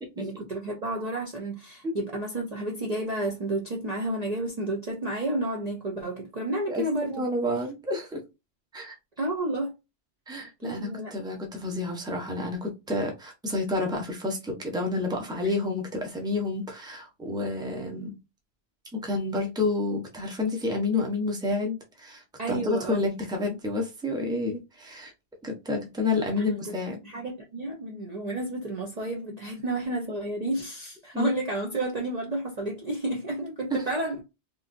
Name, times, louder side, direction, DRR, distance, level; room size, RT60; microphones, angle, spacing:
voice 1, 0.2-7.2 9.2-9.7 10.6-11.1 15.4-15.5 22.4-23.0 26.4-26.7 27.0-34.2, right 1 dB, 45° right, 0.6 m, -31 dB
voice 2, 6.7-8.2 8.7-9.0 10.3-18.2 18.9-25.1 25.4-27.0 31.1-31.3, left 2 dB, 5° right, 0.7 m, -29 dB
3.6 x 2.5 x 2.5 m
omnidirectional pair, 1.2 m